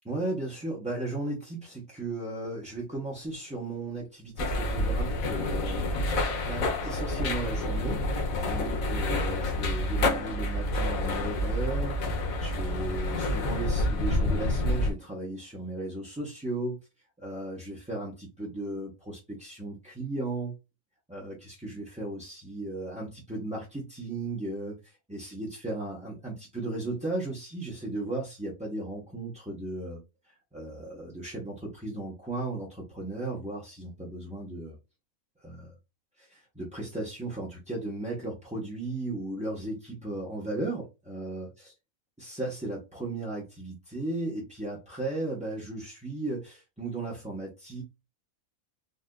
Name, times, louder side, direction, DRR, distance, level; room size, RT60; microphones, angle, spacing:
voice 1, 0.0-5.9 6.4-8.1 8.5-12.0 12.4-16.8 17.2-20.5 21.1-34.8 35.4-35.7 36.2-41.7 42.2-47.8, right 2 dB, 5° right, -5 dB, 0.7 m, -36 dB
sound 1, 4.4-14.9, left 1 dB, 80° left, 1.4 m, -28 dB
4.0 x 2.5 x 2.2 m, 0.26 s
omnidirectional pair, 1.4 m